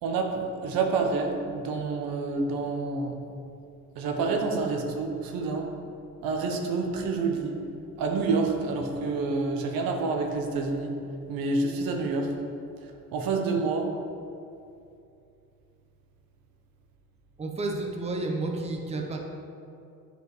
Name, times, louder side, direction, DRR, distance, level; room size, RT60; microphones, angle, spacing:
voice 1, 0.0-3.2 4.0-5.7 6.2-7.6 8.0-10.9 11.3-12.3 13.1-13.9, right 4 dB, 90° right, 2 dB, 0.9 m, -28 dB
voice 2, 17.4-19.2, right 2 dB, 20° right, 2 dB, 0.7 m, -31 dB
8.2 x 5.0 x 3.1 m, 2.6 s
cardioid pair, 120°, 34 cm